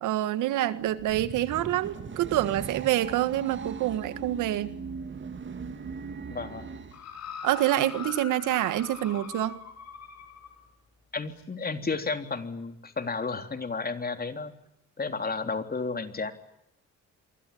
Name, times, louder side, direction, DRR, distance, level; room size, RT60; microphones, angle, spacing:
voice 1, 0.0-4.7 7.4-9.6, right 13 dB, 90° right, 13 dB, 1.8 m, -27 dB
sound 1, 0.8-7.0, right 5 dB, 40° right, 2.5 m, -39 dB
voice 2, 6.3-6.7 11.1-14.5 15.0-16.3, left 4 dB, 30° left, 7 dB, 3.6 m, -32 dB
sound 2, 6.9-10.6 11.4-11.5, left 7 dB, 60° left, 6.4 m, -42 dB
28.5 x 24.0 x 8.7 m, 0.78 s
cardioid pair, 90°, 30 cm